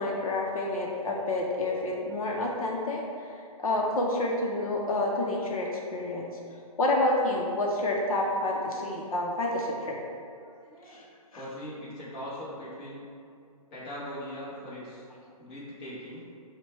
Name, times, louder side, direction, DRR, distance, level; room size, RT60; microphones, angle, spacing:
voice 1, 0.0-3.3 3.6-6.3 6.8-10.0 10.9-11.0 11.3-11.4, left 2 dB, 65° left, -2 dB, 0.7 m, -29 dB
voice 2, 10.4-11.1 11.4-13.0 13.7-15.1 15.4-16.2, equal, 15° left, -9 dB, 0.8 m, -40 dB
4.6 x 2.2 x 4.2 m, 2.4 s
hypercardioid pair, 165°, 20 cm